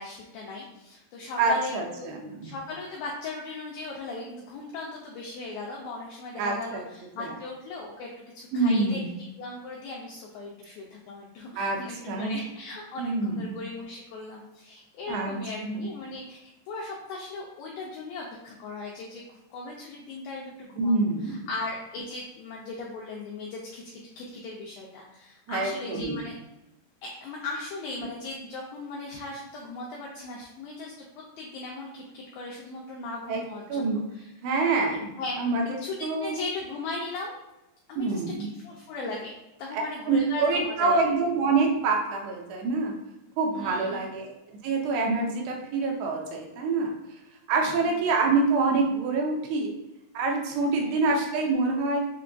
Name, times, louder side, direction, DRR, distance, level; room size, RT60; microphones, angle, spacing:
voice 1, 0.0-2.1 2.4-9.0 9.4-16.4 16.7-21.0 21.2-26.4 27.0-34.3 35.2-37.4 37.9-38.2 38.5-41.0 43.5-44.1 47.6-47.7 50.8-51.0, left 3 dB, 85° left, -2 dB, 2.0 m, -38 dB
voice 2, 1.4-2.5 6.4-6.8 7.2-7.3 8.5-9.1 11.6-11.8 12.1-12.4 13.0-13.5 15.1-15.4 15.6-15.9 20.8-21.3 25.5-26.2 33.3-34.0 34.4-36.3 38.0-38.5 39.7-42.9 43.4-46.9 47.5-49.7 50.1-52.0, right 3 dB, 85° right, 1 dB, 2.7 m, -26 dB
6.9 x 2.5 x 2.2 m, 0.92 s
omnidirectional pair, 4.8 m